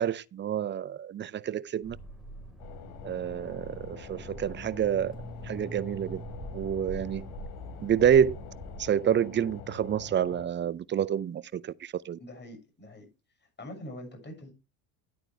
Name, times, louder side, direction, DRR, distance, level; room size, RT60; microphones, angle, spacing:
voice 1, 0.0-2.0 3.0-5.1 5.5-6.2 6.5-7.3 7.8-8.4 8.8-12.2, right 9 dB, 25° right, 0.5 m, -28 dB
sound 1, 1.8-8.8, right 1 dB, ahead, 4.5 m, -43 dB
sound 2, 2.6-10.5, left 7 dB, 70° left, 3.3 m, -46 dB
voice 2, 12.2-13.1 13.4-14.5, left 1 dB, 20° left, 6.8 m, -44 dB
11.0 x 9.0 x 3.4 m
hypercardioid pair, 85°, 47 cm